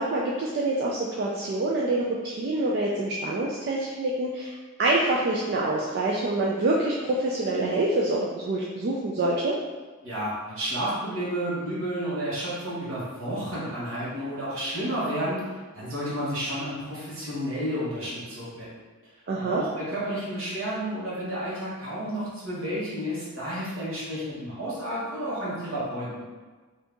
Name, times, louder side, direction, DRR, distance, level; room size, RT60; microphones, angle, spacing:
voice 1, 0.0-9.5 19.3-19.6, right 2 dB, 50° right, -4 dB, 0.3 m, -26 dB
voice 2, 10.0-15.5 15.7-18.8 19.4-26.2, equal, 75° right, -8 dB, 1.3 m, -31 dB
2.8 x 2.6 x 3.4 m, 1.3 s
head